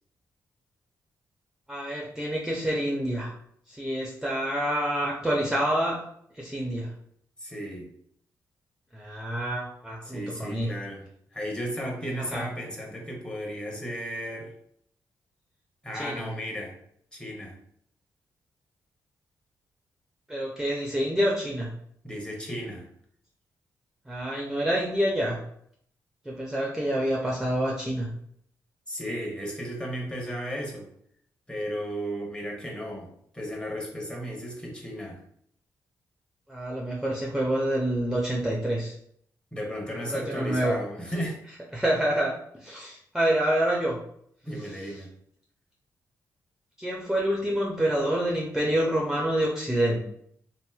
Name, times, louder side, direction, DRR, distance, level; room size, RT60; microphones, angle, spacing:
voice 1, 1.7-3.3 3.7-6.0 6.3-6.9 8.9-10.7 12.3-12.5 15.9-16.3 20.3-21.7 24.1-25.4 26.2-28.1 36.5-38.9 40.1-40.8 41.7-42.3 42.6-44.0 46.8-50.1, right 1 dB, 5° right, -3 dB, 0.6 m, -27 dB
voice 2, 7.4-7.9 10.0-14.5 15.8-16.7 17.1-17.5 22.0-22.9 28.9-30.9 31.5-35.2 39.5-41.4 44.4-45.1, equal, 15° left, -1 dB, 0.9 m, -34 dB
2.9 x 2.6 x 2.3 m, 0.67 s
cardioid pair, 65°, 7 cm